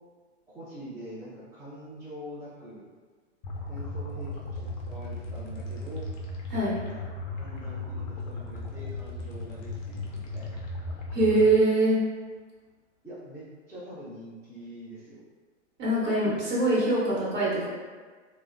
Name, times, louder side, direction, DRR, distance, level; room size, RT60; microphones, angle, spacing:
voice 1, 0.5-2.8 3.7-6.1 6.8-7.0 7.3-10.7 13.0-15.2, right 1 dB, 10° right, -13 dB, 0.5 m, -44 dB
sound 1, 3.4-11.4, left 2 dB, 40° left, 0.5 m, -36 dB
voice 2, 11.1-12.0 15.8-17.7, right 2 dB, 30° right, -8 dB, 1.0 m, -23 dB
2.6 x 2.1 x 2.5 m, 1.4 s
hypercardioid pair, 115°, 37 cm